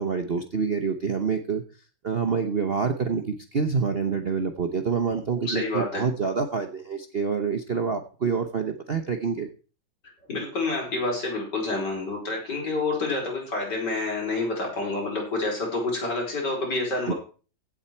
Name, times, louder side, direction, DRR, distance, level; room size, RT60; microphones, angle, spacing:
voice 1, 0.0-1.6 2.0-9.5 17.1-17.2, right 5 dB, 45° right, 7 dB, 0.9 m, -27 dB
voice 2, 5.4-6.0 10.3-17.1, left 2 dB, 60° left, 0 dB, 5.0 m, -28 dB
16.0 x 7.6 x 4.5 m, 0.37 s
omnidirectional pair, 2.1 m